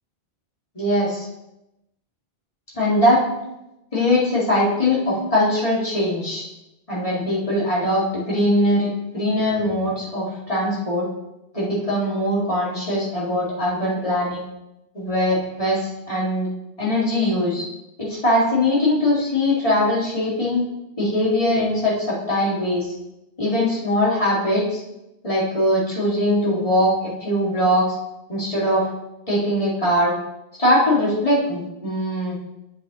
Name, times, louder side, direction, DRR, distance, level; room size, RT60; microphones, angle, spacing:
voice 1, 0.7-1.3 2.7-3.2 3.9-6.5 6.9-11.1 11.5-14.4 14.9-16.5 16.8-17.7 18.0-20.6 21.0-22.9 23.4-24.8 25.2-28.0 28.3-28.9 29.3-30.1 30.6-32.4, left 1 dB, 35° left, -7 dB, 2.6 m, -21 dB
7.8 x 7.6 x 3.1 m, 0.90 s
omnidirectional pair, 1.0 m